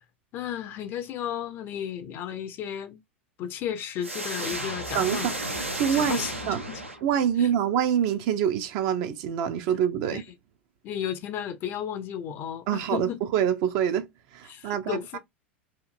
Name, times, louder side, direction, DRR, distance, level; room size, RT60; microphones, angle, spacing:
voice 1, 0.3-3.0 3.4-5.3 5.9-6.3 6.7-6.8 7.4-7.5 10.1-10.2 10.8-13.2 14.5-15.2, left 9 dB, 35° left, 0.4 m, -33 dB
sound 1, 4.0-7.4, right 1 dB, 90° right, 0.6 m, -33 dB
voice 2, 4.9-5.4 5.8-6.6 7.0-10.2 12.7-14.1 14.3-15.2, right 9 dB, 45° right, 0.4 m, -26 dB
2.8 x 2.5 x 2.4 m
figure-of-eight pair, 85°, 7 cm